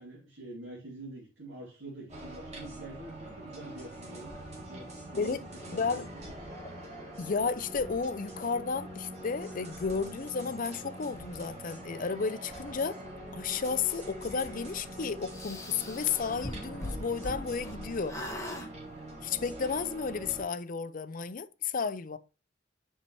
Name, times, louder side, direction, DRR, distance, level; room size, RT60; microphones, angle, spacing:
voice 1, 0.0-6.3, right 1 dB, 80° right, 2.7 m, -46 dB
sound 1, 2.1-20.4, right 1 dB, 35° right, 2.9 m, -44 dB
voice 2, 5.7-6.0 7.2-13.0 13.3-18.2 19.2-22.2, left 5 dB, 45° left, 0.5 m, -33 dB
sound 2, 15.3-17.8 18.1-18.7, left 1 dB, 15° left, 1.5 m, -40 dB
8.0 x 5.5 x 3.1 m
head